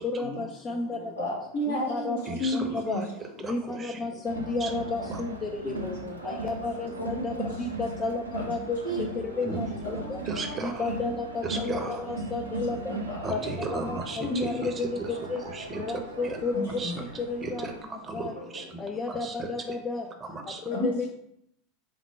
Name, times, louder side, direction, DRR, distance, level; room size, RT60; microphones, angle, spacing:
voice 1, 0.1-1.3 1.7-3.1 3.4-5.9 6.2-8.8 9.4-10.2 10.6-13.0 13.3-15.0 15.3-15.4 15.8-16.7 17.3-17.7 18.1-18.3 18.8-20.0 20.7-21.1, left 3 dB, 25° left, 3 dB, 0.3 m, -32 dB
voice 2, 1.2-3.0 6.0-6.3 7.0-7.2 8.8-9.6 10.4-10.5 11.8-11.9 12.9-14.4 16.5-16.9 20.7-21.1, left 1 dB, 75° left, -5 dB, 1.6 m, -33 dB
voice 3, 2.2-3.1 3.4-4.0 4.6-4.7 5.1-5.2 9.4-9.6 10.3-10.9 11.4-12.0 13.2-15.8 16.2-16.4 16.8-16.9 17.4-19.5 20.2-20.6, right 4 dB, 25° right, 4 dB, 0.6 m, -36 dB
Crowd, 4.2-17.8, right 2 dB, 85° right, 0.5 m, -38 dB
4.2 x 2.1 x 4.4 m, 0.74 s
figure-of-eight pair, 80°, 0 cm